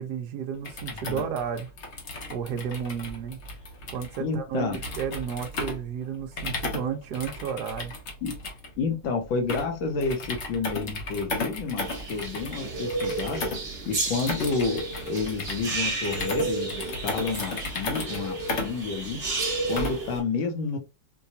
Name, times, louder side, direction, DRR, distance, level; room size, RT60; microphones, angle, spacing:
voice 1, 0.0-1.7 2.3-3.4 3.9-7.9 10.0-10.1, right 7 dB, 65° right, 1.0 m, -32 dB
sound 1, 0.5-20.2, left 2 dB, 55° left, 0.8 m, -35 dB
voice 2, 4.2-4.8 8.2-8.3 8.8-13.5 13.9-19.3 19.7-20.8, left 4 dB, 70° left, 1.6 m, -30 dB
sound 2, 11.8-20.2, right 3 dB, 40° right, 1.4 m, -32 dB
4.6 x 2.3 x 2.7 m
omnidirectional pair, 2.3 m